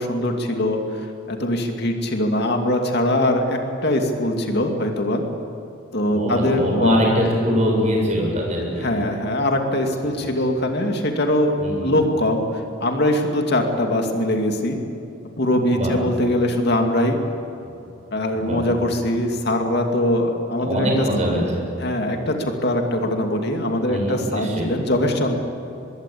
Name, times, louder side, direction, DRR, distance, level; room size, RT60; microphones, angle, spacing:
voice 1, 0.0-5.2 5.9-7.0 8.8-14.8 15.4-17.2 18.1-21.1 21.8-25.4, left 1 dB, 50° left, 4 dB, 2.5 m, -22 dB
voice 2, 6.1-9.0 10.1-10.3 11.6-11.9 15.7-15.9 18.3-18.6 20.6-21.6 23.9-24.6, equal, 35° right, -1 dB, 7.8 m, -22 dB
24.5 x 22.0 x 8.6 m, 2.8 s
head